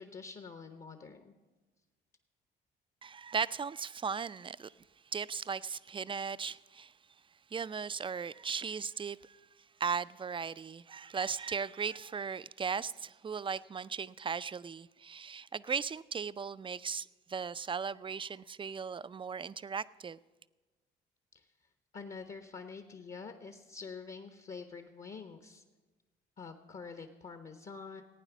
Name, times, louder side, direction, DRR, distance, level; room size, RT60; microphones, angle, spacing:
voice 1, 0.0-1.3 21.3-21.5 21.9-25.6 26.4-28.0, left 5 dB, 45° left, 1.0 m, -46 dB
voice 2, 3.0-4.7 5.1-6.9 7.5-9.4 9.8-20.2, right 6 dB, 25° right, 0.4 m, -37 dB
15.5 x 9.1 x 6.0 m
supercardioid pair, 60°, 20 cm